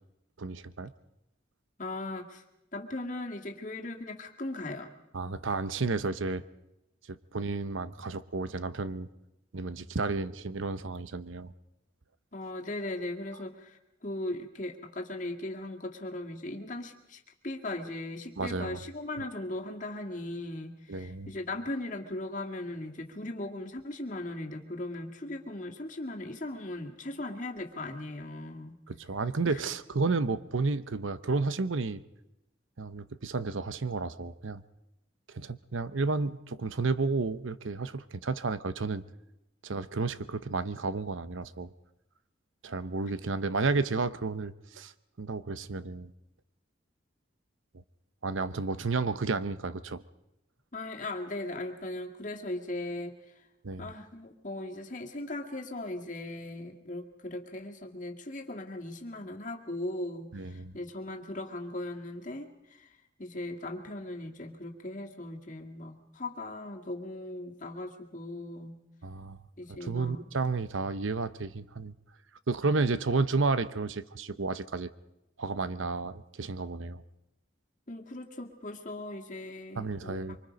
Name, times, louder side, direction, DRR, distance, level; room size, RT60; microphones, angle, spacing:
voice 1, 0.4-0.9 5.1-6.4 7.1-9.1 9.5-11.5 18.4-18.8 20.9-21.3 28.9-32.0 32.8-34.6 35.3-39.0 39.6-41.7 42.6-44.9 45.2-46.1 48.2-50.0 53.6-53.9 60.3-60.7 69.0-69.4 69.7-71.9 72.5-74.9 75.4-77.0 79.8-80.4, right 3 dB, 85° right, 14 dB, 0.8 m, -32 dB
voice 2, 1.8-2.4 2.7-4.9 12.3-28.8 29.5-29.6 50.7-53.1 53.8-62.9 63.2-68.8 69.6-70.3 77.9-80.4, left 1 dB, 40° left, 2 dB, 2.0 m, -38 dB
25.0 x 24.5 x 5.2 m, 0.90 s
head